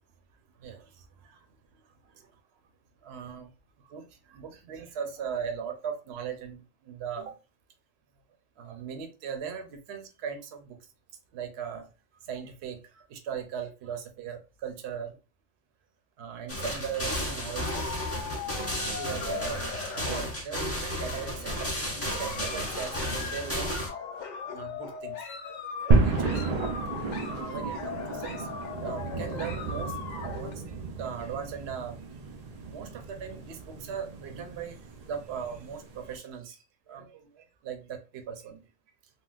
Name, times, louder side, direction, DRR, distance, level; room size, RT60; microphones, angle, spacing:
voice 1, 0.6-2.3 3.0-3.5 3.8-7.3 8.6-10.8 11.3-11.9 12.2-15.2 16.2-18.0 18.3-18.4 18.9-23.0 23.2-23.7 24.5-25.3 25.6-26.4 27.3-28.5 28.8-32.0 32.7-34.8 35.1-38.6, right 7 dB, 60° right, 0.9 m, -39 dB
sound 1, 16.5-23.9, equal, 15° left, 0.8 m, -33 dB
sound 2, 17.1-20.7 20.9-21.5 22.0-30.5, left 6 dB, 65° left, 0.4 m, -39 dB
sound 3, 25.9-36.2, right 3 dB, 80° right, 0.3 m, -31 dB
3.8 x 2.1 x 2.4 m
omnidirectional pair, 1.3 m